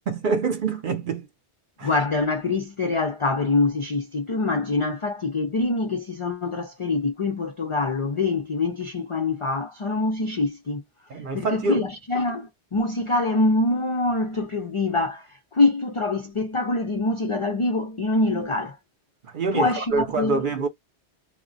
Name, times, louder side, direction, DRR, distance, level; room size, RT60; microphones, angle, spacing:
voice 1, 0.1-1.3 1.8-1.9 11.1-11.8 19.2-20.7, right 4 dB, 55° right, 0.7 m, -26 dB
voice 2, 1.8-10.8 11.3-18.8 19.5-20.4, left 3 dB, 55° left, 0.3 m, -25 dB
2.3 x 2.1 x 3.7 m
omnidirectional pair, 1.1 m